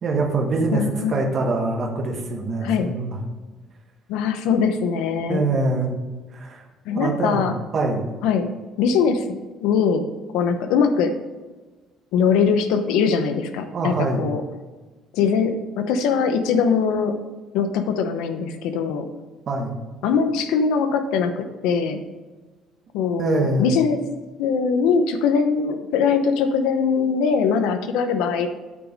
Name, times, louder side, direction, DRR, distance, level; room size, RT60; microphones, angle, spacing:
voice 1, 0.0-0.8 1.1-3.2 5.3-6.0 6.3-6.6 6.9-7.4 7.7-8.1 13.7-14.3 19.5-19.8 23.2-23.7, right 3 dB, 30° right, 1 dB, 1.3 m, -24 dB
voice 2, 0.7-1.2 2.6-2.9 4.1-5.4 6.8-7.6 8.2-8.5 8.8-10.1 10.3-11.2 12.1-14.4 15.1-17.2 17.5-19.1 20.0-22.0 22.9-24.0 24.4-28.5, left 6 dB, 85° left, 8 dB, 0.9 m, -21 dB
8.5 x 5.1 x 5.3 m, 1.2 s
cardioid pair, 175°, 0 cm